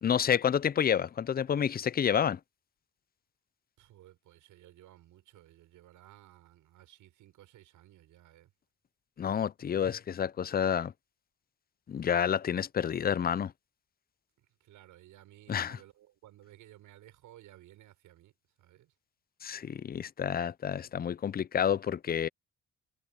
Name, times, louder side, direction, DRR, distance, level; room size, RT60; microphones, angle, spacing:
voice 1, 0.0-2.4 9.2-10.9 11.9-13.5 15.5-15.8 19.4-22.3, left 8 dB, 30° left, 0.5 m, -29 dB
voice 2, 3.8-8.5 14.4-18.9, right 14 dB, 85° right, 6.3 m, -57 dB
cardioid pair, 90°, 30 cm